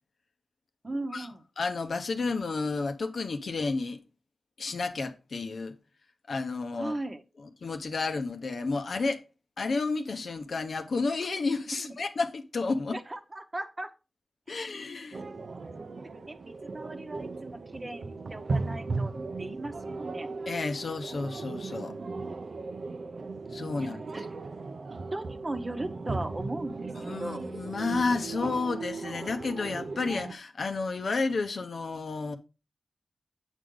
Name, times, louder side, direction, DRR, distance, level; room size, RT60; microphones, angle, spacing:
voice 1, 0.8-1.4 6.8-7.2 11.9-12.0 12.9-13.9 14.5-14.6 16.3-16.4 16.6-19.1 19.4-20.3 24.1-24.2 25.1-27.4, right 2 dB, 30° right, 0.9 m, -37 dB
voice 2, 1.6-4.0 4.6-5.7 6.3-7.0 7.4-9.2 9.6-13.0 14.5-15.2 20.5-22.0 23.5-24.3 27.0-32.4, left 4 dB, 65° left, 0.8 m, -31 dB
sound 1, 15.1-30.3, right 3 dB, 60° right, 0.6 m, -37 dB
8.3 x 5.0 x 3.7 m
wide cardioid pair, 95°, 0 cm